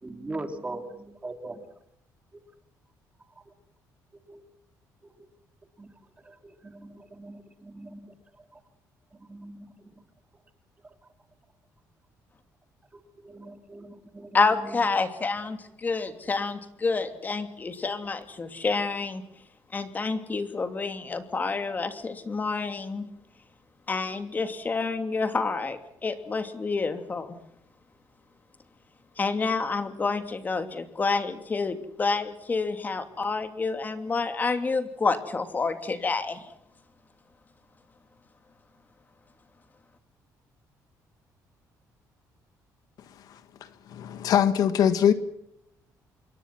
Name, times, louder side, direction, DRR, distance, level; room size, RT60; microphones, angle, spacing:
voice 1, 0.0-1.6 2.3-2.4 4.3-4.4 5.2-5.3 5.8-5.9 6.2-6.4 6.6-8.1 9.2-9.7 12.9-15.0, right 2 dB, 20° right, 3.2 m, -41 dB
voice 2, 14.3-19.2 19.7-23.0 23.9-27.4 29.2-36.4, left 4 dB, 25° left, 2.8 m, -28 dB
voice 3, 43.9-45.1, left 9 dB, 70° left, 1.7 m, -22 dB
27.0 x 22.5 x 6.1 m
cardioid pair, 130°, 7 cm